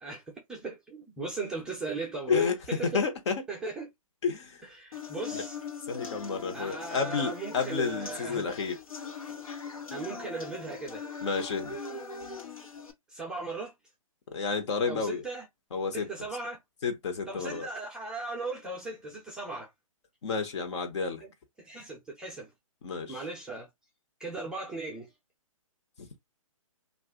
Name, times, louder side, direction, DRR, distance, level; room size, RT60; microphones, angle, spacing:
voice 1, 0.0-3.0 3.5-3.9 4.7-5.6 6.5-8.6 9.9-11.0 13.1-13.7 14.9-15.5 15.9-16.6 17.3-19.7 21.2-21.3 21.6-22.5 23.1-23.7 24.2-25.1, right 3 dB, 5° right, 0.6 m, -38 dB
voice 2, 2.8-3.4 4.2-4.6 5.3-5.4 5.9-8.7 11.2-11.8 14.3-15.2 15.7-16.1 16.8-17.7 20.2-21.2 22.8-23.2 26.0-26.1, left 5 dB, 55° left, 1.0 m, -30 dB
sound 1, 4.9-12.9, left 5 dB, 80° left, 1.1 m, -41 dB
2.6 x 2.5 x 3.7 m
hypercardioid pair, 150°, 18 cm